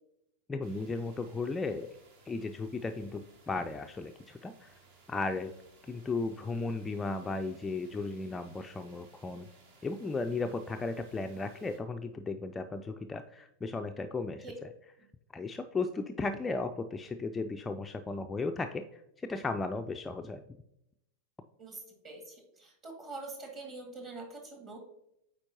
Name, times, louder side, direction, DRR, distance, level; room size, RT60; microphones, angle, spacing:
voice 1, 0.5-1.9 2.3-4.7 5.1-5.5 5.9-9.5 9.8-14.5 15.3-20.4, left 3 dB, 15° left, 6 dB, 0.3 m, -35 dB
sound 1, 0.6-11.8, right 3 dB, 50° right, 1.2 m, -61 dB
voice 2, 21.6-24.9, right 3 dB, 30° right, 2 dB, 2.0 m, -45 dB
8.7 x 4.4 x 2.8 m, 0.80 s
figure-of-eight pair, 90°, 0 cm